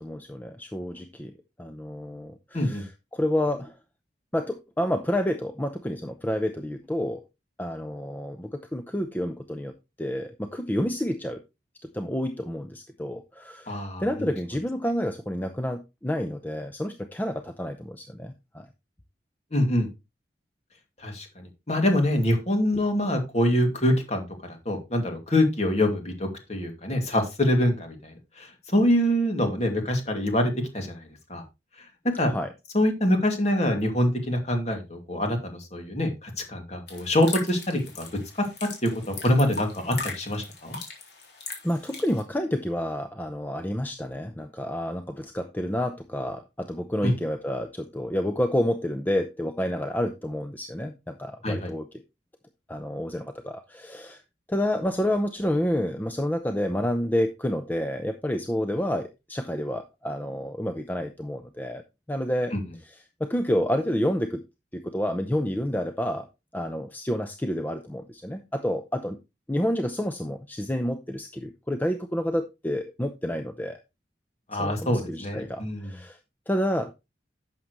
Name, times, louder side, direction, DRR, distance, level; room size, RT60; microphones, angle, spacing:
voice 1, 0.0-1.3 1.6-3.7 4.3-7.2 7.6-11.4 11.9-18.7 32.3-32.5 41.6-51.9 52.7-54.2 54.5-61.8 62.1-62.5 62.8-64.4 64.7-66.3 66.5-69.2 69.5-73.8 74.6-76.2 76.5-76.9, equal, 10° left, 7 dB, 0.6 m, -29 dB
voice 2, 13.7-14.3 19.5-19.9 21.0-24.2 24.7-28.1 28.4-31.0 31.3-31.4 32.1-32.3 32.7-38.0 38.8-40.8 47.0-47.1 51.4-51.7 62.5-62.6 74.5-75.9, left 1 dB, 35° left, 4 dB, 2.4 m, -25 dB
sound 1, 36.9-42.2, left 4 dB, 60° left, 3.6 m, -39 dB
11.5 x 7.3 x 3.1 m, 0.25 s
head